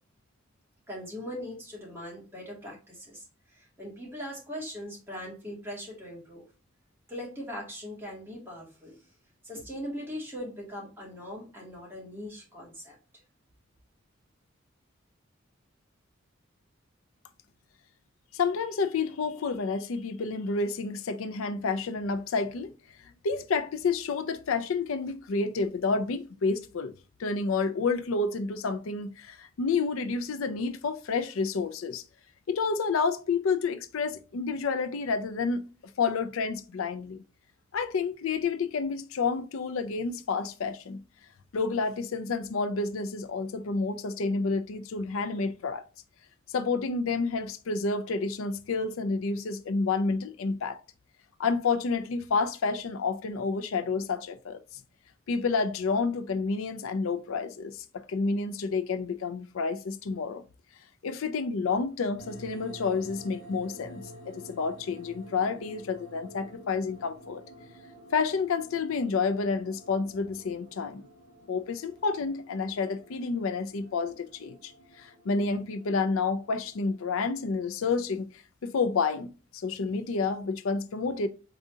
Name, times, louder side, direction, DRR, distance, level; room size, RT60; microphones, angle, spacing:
voice 1, 0.9-3.2 3.5-6.4 7.1-9.0 9.4-13.0, equal, 10° right, 2.1 m, -40 dB
voice 2, 18.3-22.7 23.2-26.9 27.2-32.0 32.5-35.6 36.0-37.2 37.7-41.0 41.5-45.8 46.5-50.8 51.4-54.6 55.3-60.4 61.0-67.4 68.1-71.1 71.5-74.7 75.0-78.3 78.6-81.3, left 4 dB, 85° left, 0.5 m, -29 dB
sound 1, 62.2-78.1, right 1 dB, 65° left, 2.5 m, -51 dB
4.8 x 3.8 x 2.7 m
head